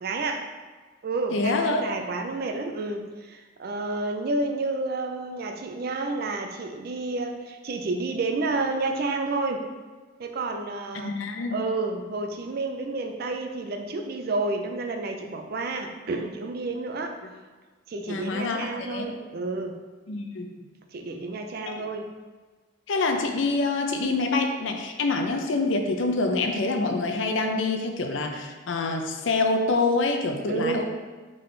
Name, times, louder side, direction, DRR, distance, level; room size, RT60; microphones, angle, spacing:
voice 1, 0.0-0.5 1.0-9.7 10.2-11.2 11.5-17.2 17.9-19.8 20.9-22.1 30.5-30.8, right 3 dB, 45° right, 4 dB, 0.4 m, -30 dB
voice 2, 1.3-1.8 10.9-11.6 18.1-19.1 20.1-20.5 21.6-21.9 22.9-30.8, left 3 dB, 65° left, 4 dB, 0.5 m, -26 dB
3.9 x 3.7 x 3.3 m, 1.4 s
head